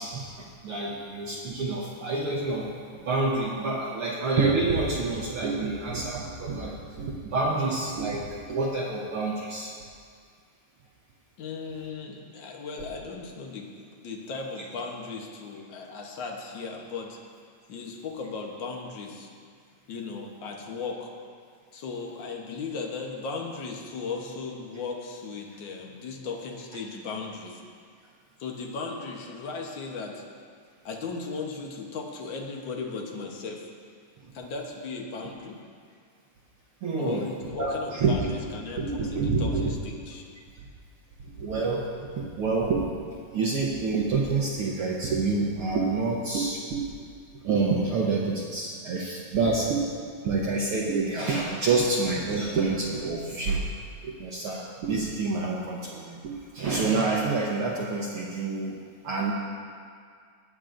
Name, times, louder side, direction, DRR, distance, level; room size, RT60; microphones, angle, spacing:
voice 1, 0.0-2.8 3.0-9.7 36.8-37.2 37.6-38.3 38.8-39.7 41.2-41.8 42.2-46.9 47.4-49.9 50.2-53.6 54.0-58.7 59.0-59.3, right 3 dB, 70° right, -3 dB, 1.3 m, -27 dB
voice 2, 11.4-13.7 14.0-17.2 17.7-19.3 19.9-21.1 21.7-27.6 28.4-30.2 30.8-33.6 34.3-35.6 37.0-40.2, left 4 dB, 70° left, 0 dB, 1.1 m, -36 dB
18.5 x 9.7 x 2.6 m, 2.1 s
omnidirectional pair, 3.5 m